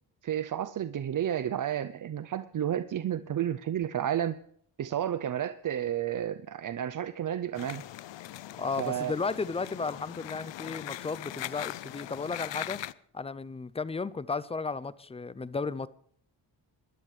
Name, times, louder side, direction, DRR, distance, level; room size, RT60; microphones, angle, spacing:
voice 1, 0.2-4.4 4.8-7.8 8.8-9.1, right 10 dB, 45° right, 0.5 m, -31 dB
sound 1, 7.5-12.9, left 14 dB, 70° left, 0.6 m, -40 dB
voice 2, 8.6-12.8 13.1-15.9, left 4 dB, 15° left, 0.4 m, -34 dB
23.5 x 11.0 x 3.2 m
cardioid pair, 80°, 46 cm